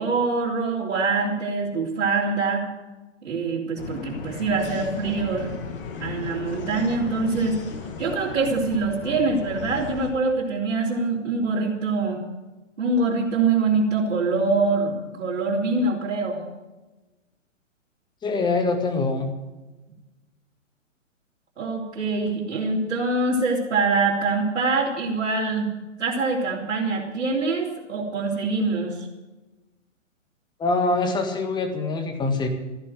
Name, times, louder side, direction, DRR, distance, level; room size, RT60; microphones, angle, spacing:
voice 1, 0.0-2.7 3.2-5.5 6.0-7.6 8.0-12.2 12.8-16.4 21.6-25.7 26.0-29.1, right 3 dB, 60° right, -5 dB, 3.5 m, -24 dB
sound 1, 3.8-10.1, left 5 dB, 45° left, 2.3 m, -36 dB
voice 2, 18.2-19.3 30.6-32.5, left 3 dB, 10° left, 5 dB, 1.7 m, -24 dB
14.5 x 10.5 x 7.7 m, 1.1 s
figure-of-eight pair, 125°, 39 cm